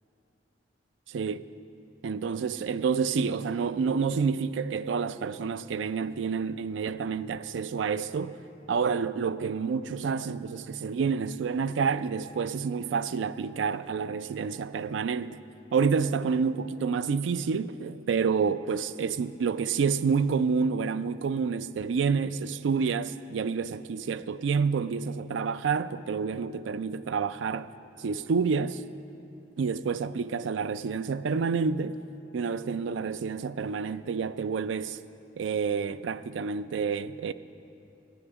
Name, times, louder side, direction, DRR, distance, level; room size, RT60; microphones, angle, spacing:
voice 1, 1.1-1.4 2.0-8.4 8.7-15.4 15.7-27.7 28.0-28.8 29.6-32.0 32.3-35.0 35.4-37.3, right 5 dB, 75° right, 0.4 m, -28 dB
11.0 x 7.0 x 9.1 m
head